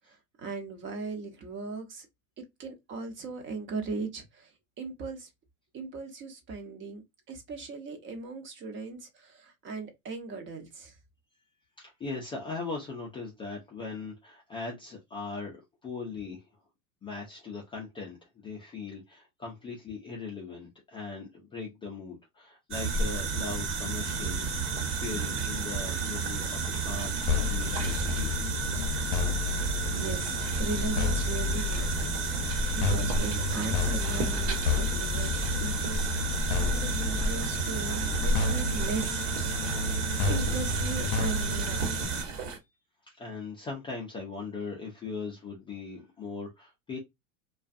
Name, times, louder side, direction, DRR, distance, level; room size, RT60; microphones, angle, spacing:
voice 1, 0.1-2.1 2.4-5.3 5.7-7.0 7.3-11.0 29.9-39.7 40.3-42.4, right 4 dB, 30° right, 0.8 m, -38 dB
voice 2, 11.8-16.5 17.0-24.7 25.0-28.4 42.5-42.7 43.1-47.0, left 4 dB, 15° left, 0.4 m, -39 dB
sound 1, 22.7-42.6, right 4 dB, 55° right, 1.2 m, -31 dB
sound 2, 27.3-42.0, left 5 dB, 60° left, 0.6 m, -31 dB
2.4 x 2.3 x 2.4 m
hypercardioid pair, 120°, 42 cm